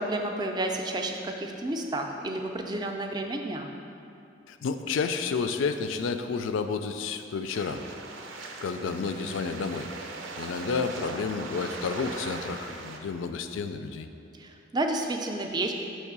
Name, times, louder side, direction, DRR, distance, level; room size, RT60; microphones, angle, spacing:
voice 1, 0.0-3.7 14.4-15.7, right 2 dB, 20° right, 3 dB, 0.4 m, -31 dB
voice 2, 4.5-7.8 8.6-9.9 10.4-14.1, left 5 dB, 85° left, 9 dB, 0.4 m, -30 dB
sound 1, 7.5-13.0, right 3 dB, 80° right, 0.6 m, -40 dB
6.3 x 3.2 x 5.9 m, 2.7 s
head